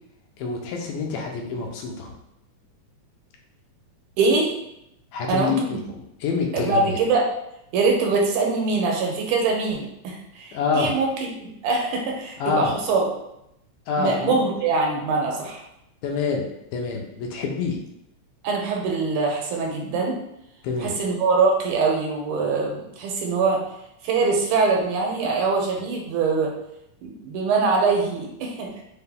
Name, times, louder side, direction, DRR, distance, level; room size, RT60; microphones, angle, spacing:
voice 1, 0.4-2.1 5.1-7.0 10.5-10.9 12.4-12.7 13.9-14.3 16.0-16.4 16.7-17.8 20.6-20.9, left 4 dB, 85° left, 1 dB, 2.2 m, -26 dB
voice 2, 4.2-4.5 5.3-5.8 6.5-7.3 7.7-11.1 11.4-13.1 14.0-15.6 18.4-20.2 20.8-23.6 24.0-26.5 27.0-28.8, right 4 dB, 80° right, 0 dB, 2.1 m, -23 dB
5.6 x 2.2 x 3.4 m, 0.81 s
omnidirectional pair, 3.6 m